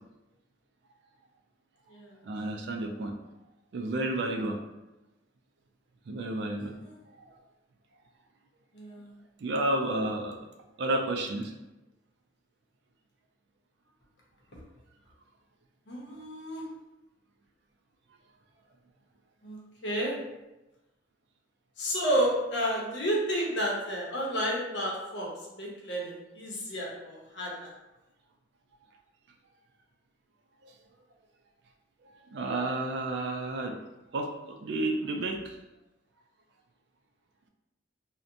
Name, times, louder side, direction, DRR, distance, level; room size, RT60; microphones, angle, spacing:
voice 1, 2.2-3.1 3.7-4.6 6.1-6.8 7.3-7.4 9.4-10.4 10.8-11.5 30.6-30.7 32.3-33.7 34.1-35.6, right 2 dB, 60° right, 3 dB, 0.3 m, -31 dB
voice 2, 6.6-6.9 8.7-9.1 15.9-16.6 19.4-19.6 19.8-20.1 21.8-27.7, equal, 70° left, -3 dB, 0.7 m, -31 dB
2.7 x 2.1 x 2.5 m, 0.99 s
head